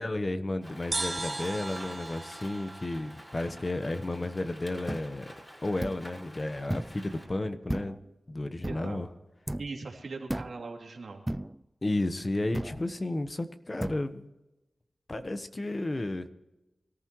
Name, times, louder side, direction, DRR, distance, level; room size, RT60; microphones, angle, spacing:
voice 1, 0.0-5.3 5.6-8.0 8.3-9.1 11.8-14.3 15.1-16.3, left 2 dB, 35° left, 10 dB, 1.1 m, -32 dB
Rain, 0.6-7.3, equal, 15° left, 5.2 m, -49 dB
sound 1, 0.9-4.4, right 2 dB, 40° right, 1.2 m, -38 dB
sound 2, 4.9-5.1 5.8-6.1 6.7-7.0 7.7-8.1 8.6-8.9 9.5-9.8 10.3-10.6 11.3-11.6 12.5-12.9 13.8-14.0, right 1 dB, 15° right, 0.4 m, -34 dB
voice 2, 8.6-9.0 9.6-11.2, right 3 dB, 80° right, 1 dB, 2.8 m, -40 dB
24.0 x 14.0 x 3.1 m, 1.0 s
wide cardioid pair, 65°, 0 cm